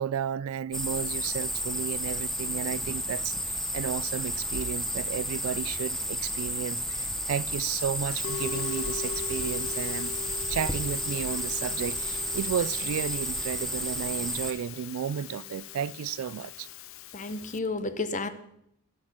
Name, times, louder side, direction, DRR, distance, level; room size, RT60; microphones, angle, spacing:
voice 1, 0.0-10.1 10.5-16.7, right 8 dB, 75° right, 0.3 m, -33 dB
sound 1, 0.7-14.5, equal, ahead, 0.8 m, -32 dB
Musical instrument, 8.1-17.6, left 8 dB, 65° left, 0.4 m, -40 dB
voice 2, 17.1-18.3, left 3 dB, 35° left, 0.8 m, -31 dB
12.0 x 8.7 x 6.0 m
head